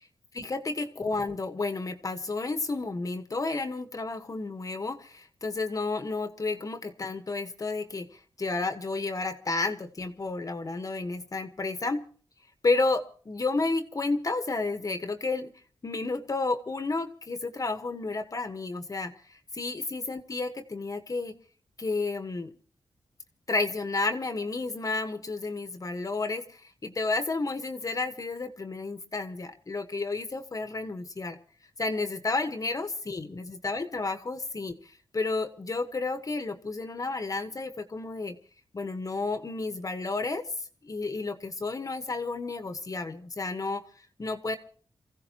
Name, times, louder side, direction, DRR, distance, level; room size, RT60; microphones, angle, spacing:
voice 1, 0.3-8.1 8.4-12.0 12.6-15.5 15.8-21.4 21.8-22.5 23.5-31.4 31.8-34.8 35.1-38.4 38.7-40.4 40.8-43.8 44.2-44.6, left 3 dB, 40° left, 8 dB, 1.3 m, -31 dB
28.0 x 16.0 x 3.0 m, 0.42 s
wide cardioid pair, 105°, 9 cm